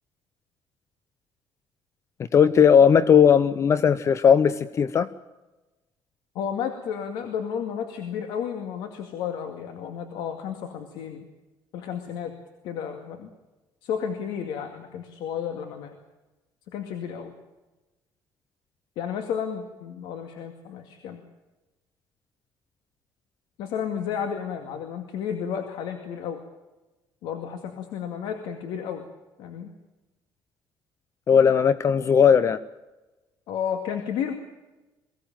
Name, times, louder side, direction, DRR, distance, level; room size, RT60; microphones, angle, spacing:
voice 1, 2.3-5.1 31.3-32.6, left 7 dB, 35° left, 15 dB, 0.7 m, -17 dB
voice 2, 6.3-11.2 11.7-12.3 12.6-13.3 13.8-16.0 16.7-17.3 19.0-21.2 23.6-26.4 27.2-29.1 29.4-29.7 33.5-34.3, left 8 dB, 85° left, 6 dB, 2.2 m, -32 dB
23.0 x 17.0 x 9.1 m, 1.1 s
cardioid pair, 140°, 8 cm